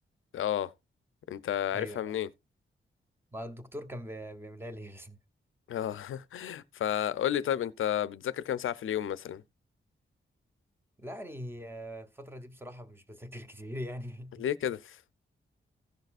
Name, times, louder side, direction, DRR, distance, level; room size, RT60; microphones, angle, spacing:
voice 1, 0.3-0.7 1.3-2.3 5.7-9.4 14.4-15.0, left 10 dB, 80° left, 0.5 m, -32 dB
voice 2, 1.7-2.2 3.3-5.2 11.0-14.4, equal, 10° right, 0.8 m, -42 dB
16.0 x 6.6 x 2.4 m
wide cardioid pair, 170°, 21 cm